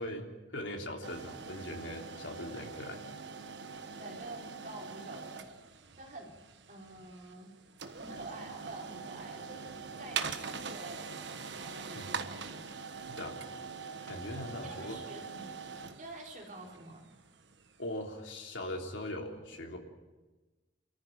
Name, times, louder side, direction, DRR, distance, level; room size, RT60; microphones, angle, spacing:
voice 1, 0.0-3.0 11.9-12.1 13.0-13.4 14.1-15.0 17.8-19.8, left 1 dB, 80° left, 2 dB, 3.5 m, -40 dB
sound 1, 1.0-17.9, right 5 dB, 65° right, 1.4 m, -43 dB
voice 2, 4.0-6.4 6.7-7.5 8.0-12.6 12.9-13.0 14.6-17.1, right 2 dB, 40° right, 0 dB, 4.3 m, -48 dB
27.5 x 14.5 x 9.3 m, 1.2 s
head